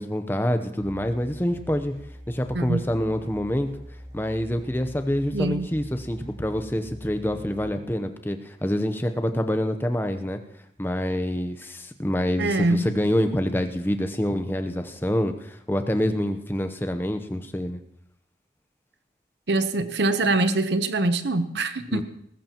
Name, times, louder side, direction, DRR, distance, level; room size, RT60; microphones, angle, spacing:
voice 1, 0.0-1.9 2.3-3.7 4.1-10.4 10.8-17.8 21.9-22.0, equal, 10° left, 0.8 m, -26 dB
sound 1, 0.8-7.7, equal, 25° right, 2.1 m, -43 dB
voice 2, 5.3-5.7 12.4-12.9 19.5-22.0, right 2 dB, 80° right, 0.9 m, -24 dB
19.5 x 15.0 x 3.0 m
head